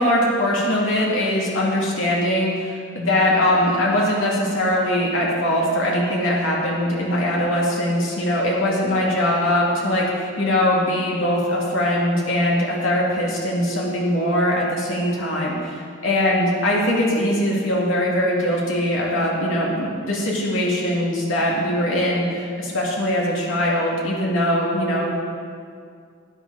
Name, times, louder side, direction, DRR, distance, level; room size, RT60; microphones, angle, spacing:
voice 1, 0.0-25.1, left 1 dB, 75° left, -4 dB, 2.5 m, -21 dB
13.0 x 9.5 x 4.0 m, 2.2 s
head